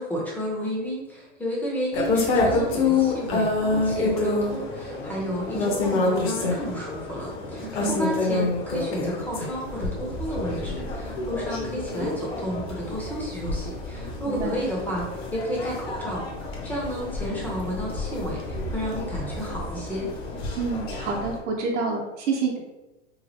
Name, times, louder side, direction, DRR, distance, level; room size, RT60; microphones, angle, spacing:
voice 1, 0.0-15.0 15.3-16.2 16.6-20.1, equal, 5° left, -5 dB, 0.5 m, -32 dB
sound 1, 1.9-21.4, left 3 dB, 55° left, 0.8 m, -28 dB
voice 2, 14.3-14.6 20.6-22.6, right 4 dB, 70° right, -1 dB, 0.8 m, -28 dB
3.1 x 2.4 x 2.7 m, 1.0 s
hypercardioid pair, 125°, 37 cm